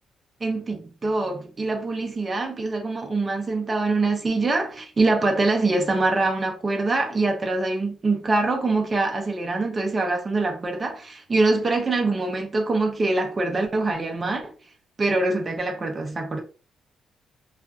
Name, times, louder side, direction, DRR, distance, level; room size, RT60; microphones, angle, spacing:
voice 1, 0.4-14.5 15.0-16.4, right 3 dB, 25° right, 0.5 m, -24 dB
2.5 x 2.3 x 2.2 m
cardioid pair, 150°, 0 cm